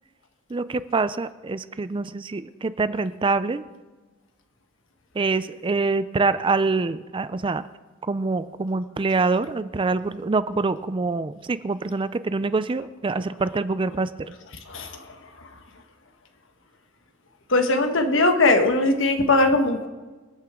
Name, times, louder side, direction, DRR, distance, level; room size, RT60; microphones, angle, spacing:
voice 1, 0.5-3.6 5.1-7.6 8.0-14.1, right 3 dB, 25° right, 14 dB, 0.4 m, -25 dB
voice 2, 14.7-15.5 17.5-19.9, left 2 dB, 65° left, 6 dB, 1.4 m, -20 dB
26.5 x 9.0 x 3.7 m, 1.3 s
head